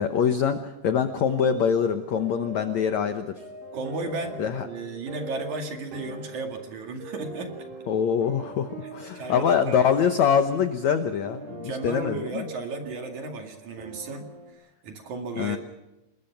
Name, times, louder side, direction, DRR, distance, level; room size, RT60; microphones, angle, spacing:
voice 1, 0.0-3.3 4.4-4.6 7.9-12.5 15.4-15.6, left 7 dB, 90° left, 8 dB, 1.5 m, -24 dB
sound 1, 1.3-14.5, right 2 dB, 85° right, 7.0 m, -43 dB
voice 2, 3.7-7.7 9.1-9.9 11.6-14.3 14.5-15.6, right 3 dB, 50° right, 4 dB, 3.1 m, -34 dB
27.0 x 21.0 x 5.9 m, 0.99 s
omnidirectional pair, 4.8 m